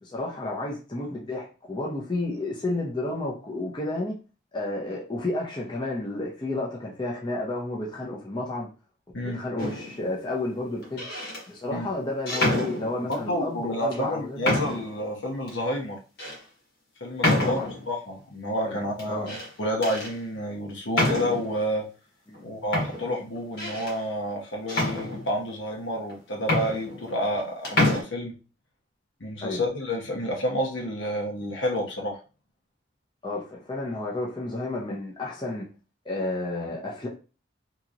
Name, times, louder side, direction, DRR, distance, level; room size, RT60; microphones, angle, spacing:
voice 1, 0.0-4.2 4.5-8.7 9.3-11.0 11.5-14.5 17.2-17.7 18.7-18.8 19.1-19.3 22.3-22.4 29.4-29.6 33.2-35.7 36.0-37.1, left 2 dB, 25° left, 0.6 m, -31 dB
sound 1, 9.6-10.0 10.8-11.4 12.3-13.2 13.9-14.0 14.4-15.0 15.5-15.6 16.2-16.4 17.2-17.9 19.0-19.5 19.8-20.1 20.9-21.6 22.3-22.4 22.7-24.0 24.7-25.5 26.1-26.2 26.4-27.4 27.6-28.0, left 1 dB, 60° left, 1.2 m, -27 dB
voice 2, 13.1-16.0 17.0-21.9 22.4-28.3 29.2-32.2, equal, 75° left, 0.9 m, -29 dB
2.9 x 2.9 x 2.5 m
head